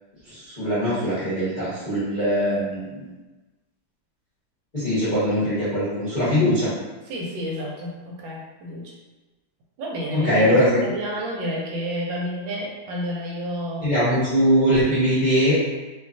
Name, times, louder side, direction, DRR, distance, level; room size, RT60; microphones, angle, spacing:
voice 1, 0.2-3.1 4.7-6.7 10.1-10.8 13.8-15.6, equal, 35° left, -13 dB, 0.9 m, -21 dB
voice 2, 7.1-8.9 9.8-13.9, equal, 80° right, -2 dB, 1.3 m, -30 dB
3.0 x 2.2 x 2.5 m, 1.2 s
omnidirectional pair, 2.1 m